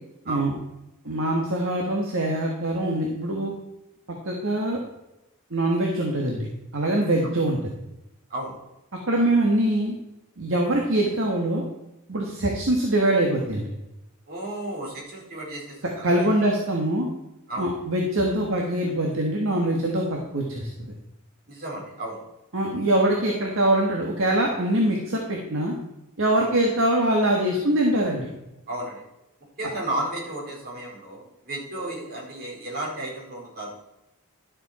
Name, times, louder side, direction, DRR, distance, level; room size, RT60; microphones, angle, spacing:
voice 1, 1.0-3.5 4.2-4.8 5.5-6.5 6.7-7.6 9.1-10.0 10.4-11.6 12.1-13.7 16.0-17.1 17.6-20.9 22.5-25.7 26.2-28.3, right 1 dB, 60° right, 0 dB, 1.6 m, -23 dB
voice 2, 14.3-15.8 16.2-16.3 17.5-17.7 21.5-22.2 26.4-26.5 28.7-29.0 29.6-33.7, right 1 dB, 45° right, -4 dB, 4.7 m, -33 dB
12.0 x 7.5 x 4.4 m, 0.92 s
head